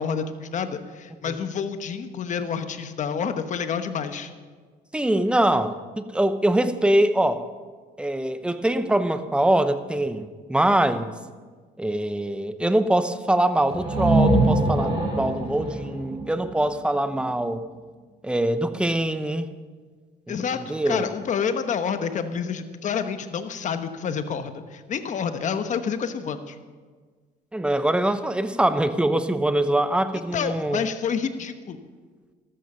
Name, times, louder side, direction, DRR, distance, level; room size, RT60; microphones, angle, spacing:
voice 1, 0.0-4.3 20.3-26.5 30.3-31.8, left 6 dB, 45° left, 9 dB, 1.1 m, -28 dB
voice 2, 4.9-7.5 8.0-11.1 11.8-17.7 18.2-19.5 20.3-21.1 27.5-30.9, right 1 dB, 5° right, 10 dB, 0.8 m, -23 dB
sound 1, 13.7-17.4, right 2 dB, 30° right, 5.8 m, -24 dB
14.0 x 13.0 x 5.6 m, 1.5 s
cardioid pair, 110°, 17 cm